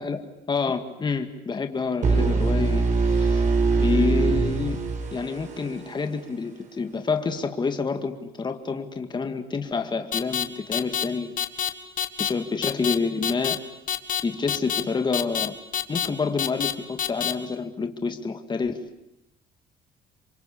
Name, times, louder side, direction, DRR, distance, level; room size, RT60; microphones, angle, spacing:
voice 1, 0.0-3.5 3.8-4.8 5.1-11.3 12.2-13.6 14.2-15.5 15.9-18.9, left 4 dB, 25° left, 7 dB, 2.1 m, -28 dB
sound 1, 2.0-5.9, right 4 dB, 45° right, 5.4 m, -22 dB
sound 2, 10.1-10.4 10.7-11.0 11.4-11.7 12.0-12.3 12.6-12.9 13.2-13.6 13.9-14.2 14.5-14.8 15.1-15.5 15.7-16.1 16.4-16.7 17.0-17.3, left 10 dB, 55° left, 2.0 m, -26 dB
27.5 x 24.0 x 8.6 m, 0.84 s
cardioid pair, 110°, 17 cm